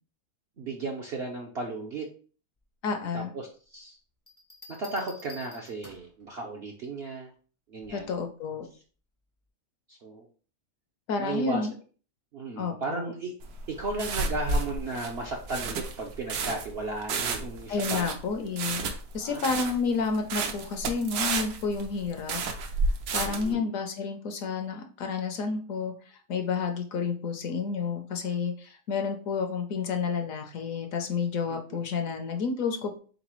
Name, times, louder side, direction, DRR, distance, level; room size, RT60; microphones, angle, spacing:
voice 1, 0.6-2.1 3.1-4.0 4.7-7.3 7.7-8.1 9.9-10.3 11.2-11.6 12.3-13.4 13.7-18.1 19.2-19.4 23.3-23.7 31.5-31.6, right 3 dB, 60° right, 1 dB, 0.6 m, -35 dB
voice 2, 2.8-3.3 7.9-8.7 11.1-11.7 12.6-13.1 17.7-18.8 19.1-22.4 23.1-25.9 26.3-33.0, left 5 dB, 65° left, 5 dB, 1.0 m, -30 dB
sound 1, 4.3-6.2 7.8-8.2, left 2 dB, 20° left, 0.5 m, -49 dB
sound 2, 13.4-23.5, right 3 dB, 75° right, 1.2 m, -31 dB
4.0 x 4.0 x 3.0 m, 0.41 s
omnidirectional pair, 1.7 m